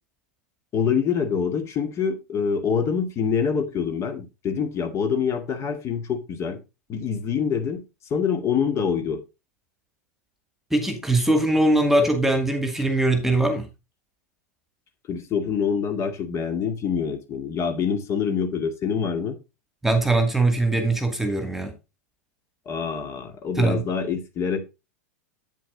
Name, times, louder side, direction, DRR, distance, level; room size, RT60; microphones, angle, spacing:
voice 1, 0.7-6.6 6.9-7.8 8.1-9.2 15.1-19.4 22.7-24.6, left 6 dB, 35° left, 2.1 m, -25 dB
voice 2, 10.7-13.7 19.8-21.7 23.6-23.8, right 2 dB, 5° right, 2.2 m, -21 dB
9.1 x 7.5 x 3.9 m
figure-of-eight pair, 90°, 8 cm